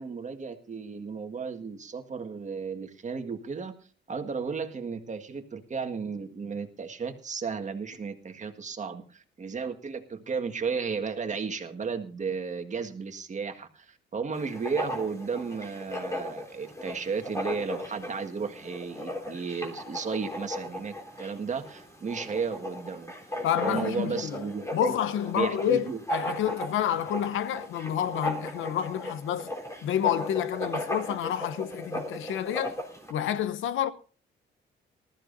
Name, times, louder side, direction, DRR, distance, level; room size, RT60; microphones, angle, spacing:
voice 1, 0.0-3.7 4.1-23.1 23.6-24.9 25.3-26.0, right 5 dB, 35° right, 1.8 m, -34 dB
Writing, 14.3-33.1, left 1 dB, 15° left, 3.7 m, -37 dB
voice 2, 23.4-24.4 24.7-29.5 29.8-32.7 33.1-33.9, left 10 dB, 80° left, 0.9 m, -29 dB
19.5 x 14.0 x 2.6 m
cardioid pair, 90°, 20 cm